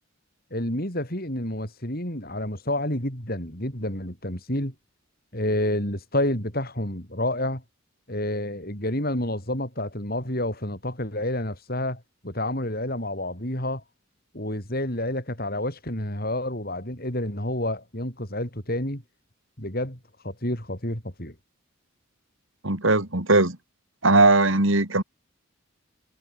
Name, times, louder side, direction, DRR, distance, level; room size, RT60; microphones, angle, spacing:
voice 1, 0.5-4.7 5.3-7.6 8.1-13.8 14.3-19.0 19.6-20.0 20.2-21.3, left 1 dB, 45° left, 7.8 m, -29 dB
voice 2, 22.6-23.6 24.0-25.0, right 2 dB, 65° right, 3.5 m, -19 dB
head